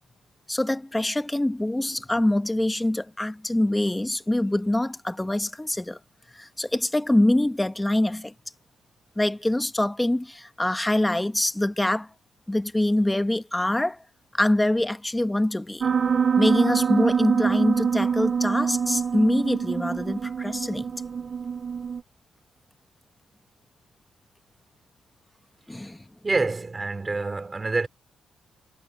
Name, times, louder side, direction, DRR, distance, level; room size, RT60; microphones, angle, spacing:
voice 1, 0.5-6.0 6.3-8.3 9.2-12.1 12.5-14.0 14.3-15.9 16.4-20.9 25.7-26.0, left 1 dB, 10° left, 1.3 m, -24 dB
Piano, 15.8-22.0, right 6 dB, 35° right, 0.8 m, -25 dB
voice 2, 26.2-27.9, right 3 dB, 20° right, 3.1 m, -26 dB
cardioid pair, 130°, 0 cm